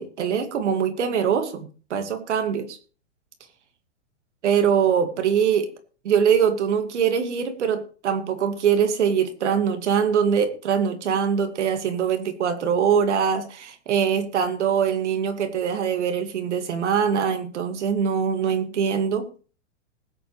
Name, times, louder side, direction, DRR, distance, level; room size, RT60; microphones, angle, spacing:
voice 1, 0.0-2.8 4.4-5.7 6.0-19.3, right 7 dB, 75° right, 7 dB, 2.4 m, -23 dB
20.0 x 8.1 x 3.3 m, 0.37 s
hypercardioid pair, 130°, 36 cm